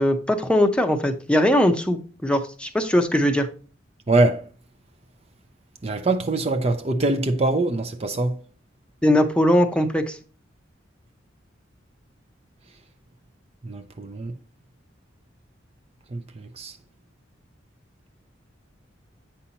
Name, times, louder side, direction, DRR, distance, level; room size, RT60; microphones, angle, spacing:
voice 1, 0.0-3.5 9.0-10.2, left 1 dB, 5° left, 0.7 m, -20 dB
voice 2, 4.1-4.5 5.8-8.4 13.6-14.4 16.1-16.8, right 2 dB, 30° right, 0.5 m, -23 dB
8.5 x 5.6 x 2.8 m
head